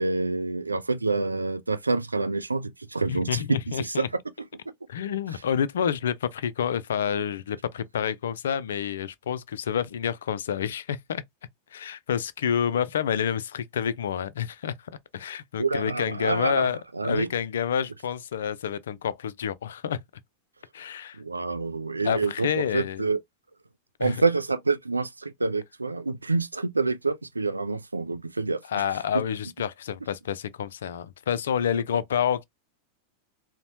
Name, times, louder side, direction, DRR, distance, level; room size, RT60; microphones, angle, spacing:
voice 1, 0.0-4.0 15.6-16.7 17.0-17.3 21.2-23.2 24.0-28.6, right 3 dB, 80° right, 0.3 m, -27 dB
voice 2, 3.1-4.1 4.9-11.2 11.7-16.8 17.0-20.0 20.7-21.2 22.0-23.1 24.0-24.2 28.7-32.4, left 8 dB, 65° left, 0.3 m, -28 dB
4.0 x 2.1 x 2.7 m
figure-of-eight pair, 90°, 0 cm